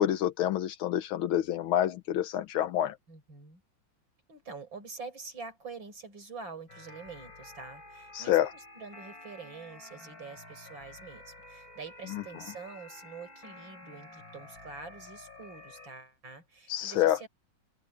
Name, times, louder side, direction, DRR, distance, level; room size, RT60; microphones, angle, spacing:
voice 1, 0.0-3.0 8.1-8.5 12.1-12.2 16.7-17.2, left 12 dB, 85° left, 1.7 m, -27 dB
voice 2, 3.1-3.6 4.3-17.3, right 4 dB, 65° right, 6.3 m, -46 dB
sound 1, 6.7-15.9, left 2 dB, 70° left, 8.3 m, -50 dB
omnidirectional pair, 2.2 m